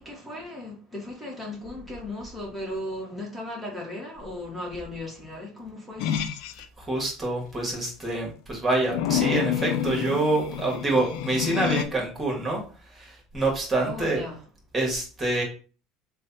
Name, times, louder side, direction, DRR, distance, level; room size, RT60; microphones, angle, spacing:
voice 1, 0.0-6.2 13.9-14.4, left 1 dB, ahead, 1.4 m, -36 dB
sound 1, 6.0-6.6 8.9-11.8, left 9 dB, 70° left, 0.3 m, -28 dB
voice 2, 6.8-12.6 12.9-14.2 14.7-15.4, right 2 dB, 20° right, 1.5 m, -26 dB
3.1 x 2.3 x 4.0 m
hypercardioid pair, 85°, 0 cm